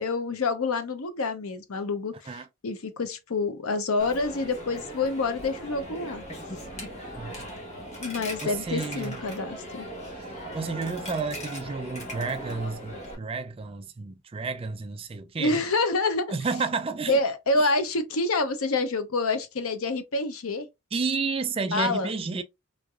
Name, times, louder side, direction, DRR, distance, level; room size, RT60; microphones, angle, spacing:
voice 1, 0.0-6.2 8.0-9.9 15.4-16.3 17.1-20.7 21.7-22.1, left 3 dB, 90° left, 0.7 m, -27 dB
Coin (dropping), 4.0-13.2, equal, 30° left, 1.1 m, -39 dB
voice 2, 7.1-7.5 8.4-9.2 10.1-15.6 16.3-17.2 17.5-17.6 20.9-22.4, right 4 dB, 25° right, 0.3 m, -31 dB
3.5 x 3.2 x 2.4 m
head